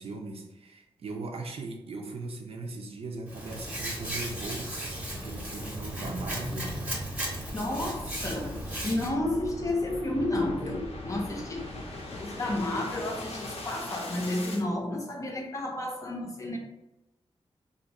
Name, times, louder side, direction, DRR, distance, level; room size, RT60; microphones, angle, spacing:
voice 1, 0.0-6.8, right 3 dB, 70° right, 3 dB, 0.5 m, -39 dB
sound 1, 3.1-14.6, left 2 dB, 80° left, 0.7 m, -42 dB
Hands, 3.3-9.1, right 1 dB, 15° right, 0.8 m, -36 dB
voice 2, 7.5-8.6 8.8-11.7 12.1-16.6, left 1 dB, 30° left, 1 dB, 0.6 m, -31 dB
2.6 x 2.5 x 4.1 m, 0.96 s
wide cardioid pair, 145°, 10 cm